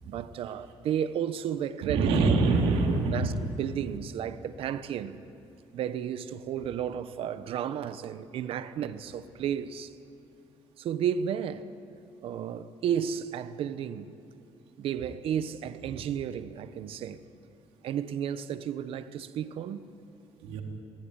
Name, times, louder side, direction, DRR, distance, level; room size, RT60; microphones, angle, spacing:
voice 1, 0.1-2.1 2.9-5.2 5.7-9.9 10.8-11.7 12.2-14.1 14.8-17.2 17.8-19.9, right 9 dB, 70° right, 1.2 m, -33 dB
voice 2, 1.8-3.3 20.4-20.6, right 3 dB, 90° right, 3.7 m, -25 dB
28.0 x 18.5 x 9.9 m
cardioid pair, 100°, 10 cm